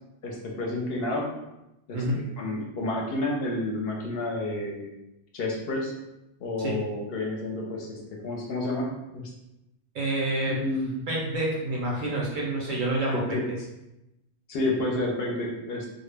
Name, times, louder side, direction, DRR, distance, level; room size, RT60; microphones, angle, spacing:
voice 1, 0.2-1.3 1.9-4.9 5.3-5.9 6.4-9.3 10.5-11.1 13.1-13.4 14.5-15.9, left 2 dB, 70° left, -1 dB, 0.7 m, -30 dB
voice 2, 9.9-10.6 11.1-13.4, right 1 dB, 60° right, -3 dB, 0.6 m, -28 dB
2.1 x 2.0 x 3.2 m, 0.93 s
omnidirectional pair, 1.1 m